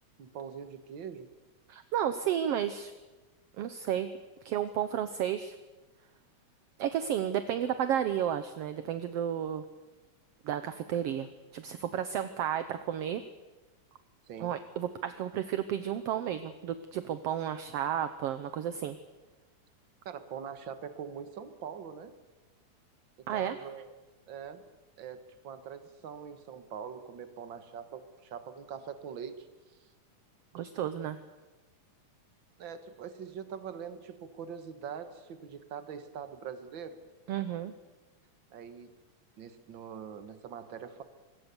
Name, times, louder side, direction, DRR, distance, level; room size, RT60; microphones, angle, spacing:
voice 1, 0.2-1.3 14.3-14.5 20.1-22.1 23.2-23.9 24.3-24.6 25.0-29.5 32.6-37.0 38.5-38.9 39.4-41.0, right 7 dB, 45° right, 9 dB, 1.9 m, -43 dB
voice 2, 1.7-2.9 3.6-4.1 4.4-5.5 6.8-9.6 10.4-11.3 11.5-13.2 14.4-19.0 23.3-23.6 30.5-31.2 37.3-37.7, right 10 dB, 70° right, 10 dB, 1.6 m, -32 dB
25.5 x 21.5 x 7.0 m, 1.2 s
omnidirectional pair, 3.5 m